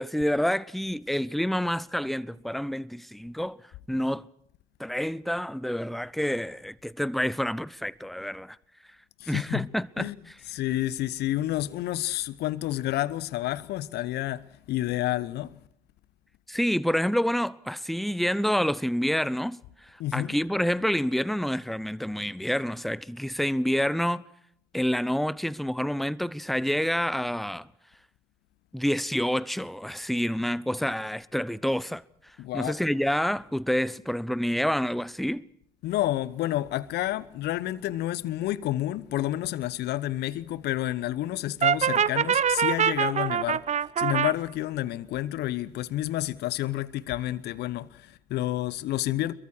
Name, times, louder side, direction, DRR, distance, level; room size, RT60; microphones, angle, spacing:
voice 1, 0.0-3.6 3.9-4.3 4.8-8.6 9.3-10.1 16.5-19.6 20.1-24.2 24.7-27.7 28.7-32.0 32.5-35.4, equal, ahead, 0.8 m, -28 dB
voice 2, 9.2-9.7 10.0-10.2 10.5-15.5 20.0-20.4 32.4-32.8 35.8-43.6 44.0-49.3, left 14 dB, 60° left, 1.0 m, -29 dB
Brass instrument, 41.6-44.3, right 8 dB, 35° right, 0.8 m, -24 dB
26.5 x 23.0 x 4.5 m
figure-of-eight pair, 50°, 20 cm